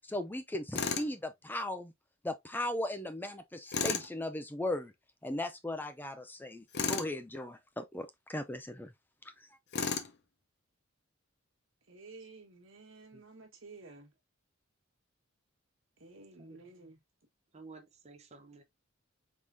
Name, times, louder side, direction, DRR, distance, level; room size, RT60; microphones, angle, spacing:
voice 1, 0.1-1.9 2.2-4.9 5.2-8.9 9.4-9.5, left 1 dB, 10° left, 0.5 m, -37 dB
Tools, 0.8-1.1 3.7-4.1 6.7-7.1 9.7-10.1, left 5 dB, 55° left, 0.8 m, -33 dB
voice 2, 11.9-14.1 16.0-17.0, right 3 dB, 70° right, 1.5 m, -52 dB
voice 3, 17.5-18.6, right 3 dB, 35° right, 0.8 m, -52 dB
4.8 x 3.7 x 2.6 m
head